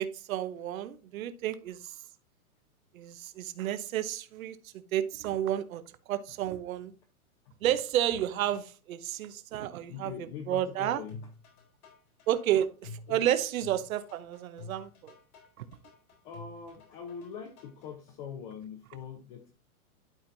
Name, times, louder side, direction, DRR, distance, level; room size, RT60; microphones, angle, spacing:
voice 1, 0.0-1.9 2.9-5.8 6.1-6.9 7.6-10.1 10.5-11.0 12.3-15.1 15.6-15.7, right 11 dB, 70° right, 0.9 m, -31 dB
voice 2, 9.9-11.3 13.1-13.2 16.2-19.5, left 7 dB, 35° left, 0.9 m, -43 dB
sound 1, 11.1-17.9, left 3 dB, 80° left, 4.0 m, -49 dB
12.0 x 4.4 x 2.7 m
hypercardioid pair, 150°, 43 cm